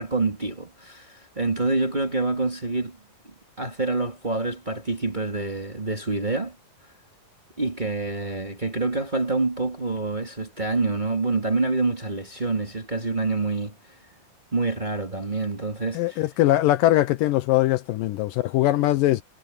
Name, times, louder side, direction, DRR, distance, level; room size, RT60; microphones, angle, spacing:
voice 1, 0.0-3.0 3.6-6.6 7.6-13.7 14.5-16.2 18.8-18.9, right 3 dB, 15° right, 1.9 m, -26 dB
voice 2, 15.9-19.2, left 15 dB, 80° left, 2.2 m, -21 dB
omnidirectional pair, 4.2 m